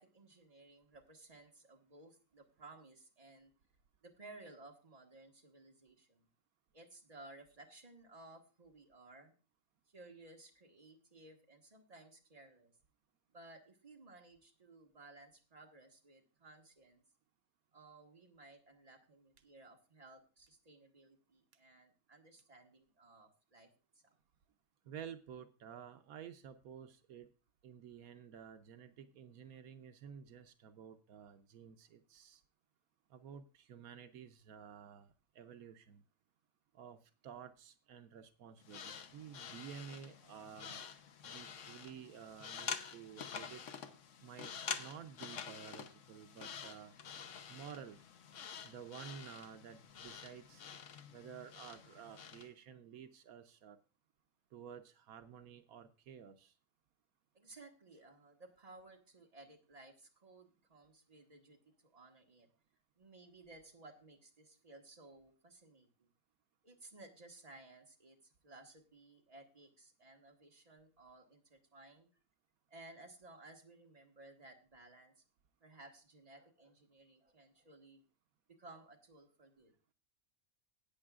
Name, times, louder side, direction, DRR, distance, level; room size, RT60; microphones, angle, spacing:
voice 1, 0.0-3.5 4.0-6.3 6.7-9.3 9.9-12.7 13.3-17.0 17.7-23.7 24.0-24.1 57.3-62.5 63.0-66.1 66.6-72.1 72.7-75.2 75.6-78.0 78.5-79.7, right 2 dB, 25° right, 1 dB, 1.7 m, -58 dB
voice 2, 24.8-27.3 27.6-32.4 33.1-36.0 36.7-40.8 41.2-43.6 44.2-46.9 47.5-48.0 48.6-50.6 51.1-53.8 54.5-56.5, right 8 dB, 85° right, 8 dB, 1.2 m, -52 dB
sound 1, 38.6-52.5, left 6 dB, 65° left, 1.1 m, -48 dB
17.0 x 8.8 x 2.4 m, 0.34 s
omnidirectional pair, 1.5 m